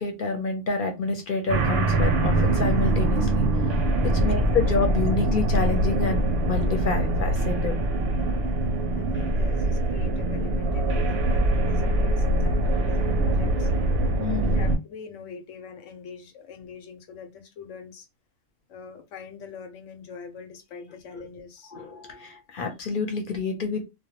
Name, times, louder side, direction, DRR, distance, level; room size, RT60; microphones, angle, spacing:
voice 1, 0.0-3.4 4.0-7.8 14.2-14.6 21.1-21.2 21.7-23.8, left 4 dB, 50° left, 0.8 m, -28 dB
sound 1, 1.5-14.8, right 1 dB, 65° right, 0.7 m, -23 dB
voice 2, 8.9-13.7 14.4-18.1 18.7-21.7, left 6 dB, 75° left, 1.0 m, -43 dB
2.2 x 2.2 x 2.9 m
omnidirectional pair, 1.3 m